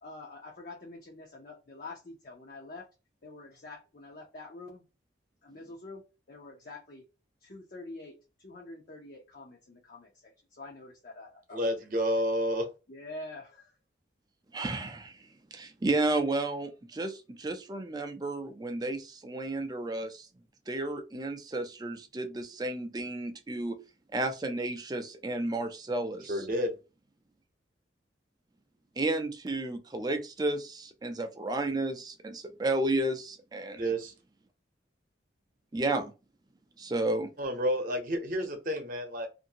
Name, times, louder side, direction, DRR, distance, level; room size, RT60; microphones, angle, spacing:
voice 1, 0.0-2.9 3.2-4.8 5.4-7.0 7.4-11.7 12.9-13.8, left 2 dB, 50° left, 0.6 m, -46 dB
voice 2, 11.5-12.7 26.3-26.7 33.8-34.1 37.4-39.3, equal, 45° right, 0.8 m, -30 dB
voice 3, 14.5-15.2 15.5-20.3 20.7-23.8 24.1-26.4 29.0-33.9 35.7-36.1 36.8-37.3, right 2 dB, 20° right, 0.4 m, -32 dB
2.7 x 2.6 x 2.7 m
head